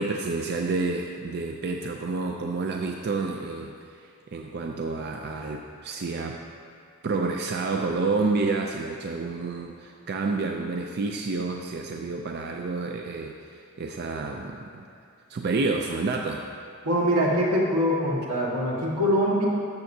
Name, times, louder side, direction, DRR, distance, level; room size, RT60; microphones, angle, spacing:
voice 1, 0.0-6.4 7.0-14.8 15.3-16.5, right 3 dB, 50° right, 2 dB, 0.4 m, -29 dB
voice 2, 16.8-19.5, equal, 90° right, -4 dB, 1.7 m, -23 dB
12.5 x 6.9 x 2.7 m, 2.3 s
head